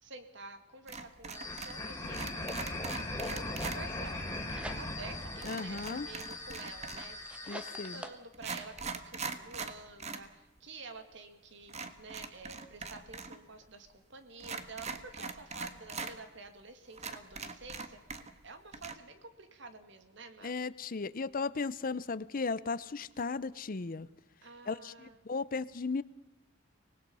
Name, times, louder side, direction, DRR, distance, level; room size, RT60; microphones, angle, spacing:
voice 1, 0.0-2.3 3.3-4.2 4.8-18.0 18.4-20.5 24.4-25.2, right 3 dB, 65° right, 8 dB, 2.4 m, -49 dB
sound 1, 0.9-1.8 2.1-3.8 5.4-7.2 7.9-8.0 8.3-10.3 10.6-10.7 11.7-13.4 13.6-13.7 14.4-16.1 16.6-16.7 17.0-18.5 18.7-18.9, right 4 dB, 35° right, 1.5 m, -41 dB
sound 2, 1.3-8.0, left 2 dB, 15° left, 3.2 m, -39 dB
sound 3, 4.1-5.2 5.7-8.9, right 1 dB, 5° right, 1.2 m, -48 dB
voice 2, 5.4-6.1 7.5-8.0 20.4-24.1 24.7-26.0, left 4 dB, 45° left, 17 dB, 0.6 m, -36 dB
25.0 x 19.5 x 5.5 m, 1.0 s
head